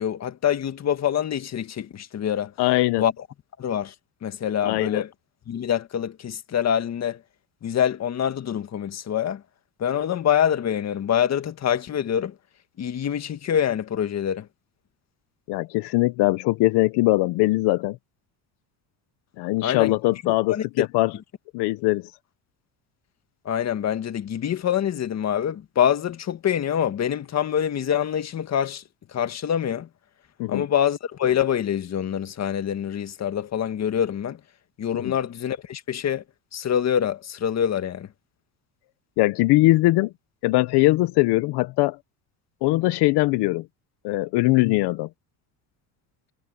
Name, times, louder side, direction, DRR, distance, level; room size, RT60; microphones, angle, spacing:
voice 1, 0.0-2.5 3.0-3.3 3.6-3.9 4.2-5.1 5.5-7.2 7.6-9.4 9.8-12.3 12.8-14.5 19.6-20.0 20.2-20.9 23.5-28.8 29.1-29.9 30.5-34.4 34.8-36.2 36.5-38.1, left 9 dB, 40° left, 1.8 m, -25 dB
voice 2, 2.6-3.0 4.6-5.0 15.5-18.0 19.4-21.1 21.5-22.1 30.4-30.6 34.9-35.1 39.2-40.1 40.4-42.0 42.6-43.6 44.0-45.1, left 20 dB, 70° left, 1.1 m, -21 dB
cardioid pair, 110°, 42 cm